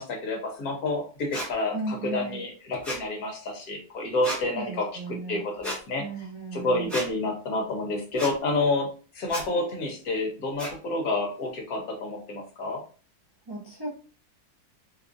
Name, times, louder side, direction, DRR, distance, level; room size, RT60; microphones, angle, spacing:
voice 1, 0.0-4.9 5.3-6.0 6.5-8.9 9.1-12.8, left 2 dB, 60° left, 1 dB, 1.2 m, -29 dB
sound 1, 1.3-1.5 2.8-3.0 4.2-4.4 5.6-5.8 6.9-7.1 8.2-8.3 9.3-9.4 10.6-10.7, equal, ahead, 0.8 m, -33 dB
voice 2, 1.7-2.5 4.5-5.5 6.0-7.0 13.5-13.9, right 2 dB, 40° right, -5 dB, 0.3 m, -35 dB
4.0 x 2.4 x 2.5 m, 0.38 s
omnidirectional pair, 2.0 m